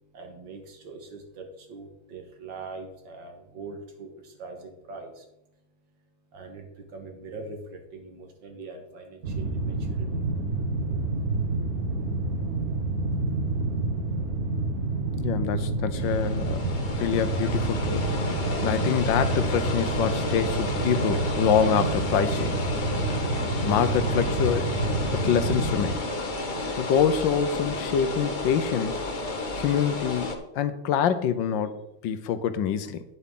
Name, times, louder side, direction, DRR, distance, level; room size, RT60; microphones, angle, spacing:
voice 1, 0.1-4.1 4.4-5.2 6.3-6.7 6.9-10.1, right 3 dB, 75° right, 4 dB, 2.2 m, -42 dB
sound 1, 9.2-25.9, right 2 dB, 50° right, 1.6 m, -28 dB
voice 2, 15.2-16.6 17.0-18.1 18.6-22.6 23.6-24.7 25.1-26.0 26.7-28.9 29.5-33.0, left 8 dB, 80° left, 11 dB, 1.4 m, -26 dB
sound 2, 16.0-30.4, left 2 dB, 35° left, 0.9 m, -32 dB
9.5 x 8.1 x 3.8 m, 0.87 s
omnidirectional pair, 2.1 m